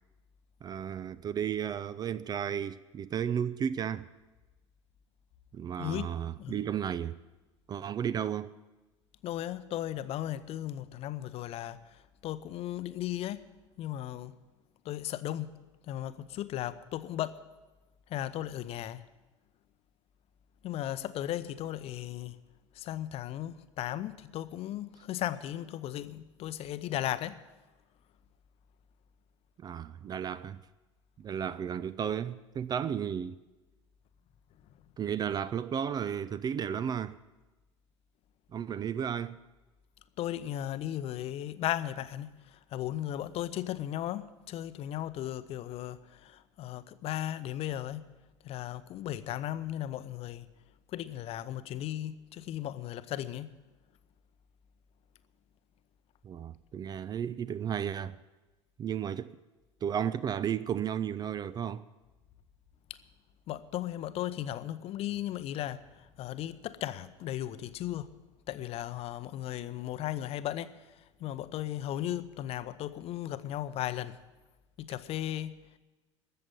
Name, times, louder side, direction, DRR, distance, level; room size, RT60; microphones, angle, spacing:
voice 1, 0.6-4.1 5.5-7.2 7.7-8.5 29.6-30.6 31.2-33.4 35.0-37.2 38.5-39.4 56.2-58.2 58.8-59.4 59.8-61.8, right 8 dB, 25° right, 0.4 m, -33 dB
voice 2, 5.8-6.1 6.4-6.6 9.2-13.5 13.8-14.3 14.8-15.6 15.8-17.4 18.1-19.0 20.6-22.4 22.7-27.4 40.2-48.1 48.4-50.5 50.9-53.6 63.5-68.1 68.5-74.2 74.8-75.8, left 12 dB, 40° left, 0.7 m, -36 dB
13.5 x 7.7 x 10.0 m
figure-of-eight pair, 75°, 16 cm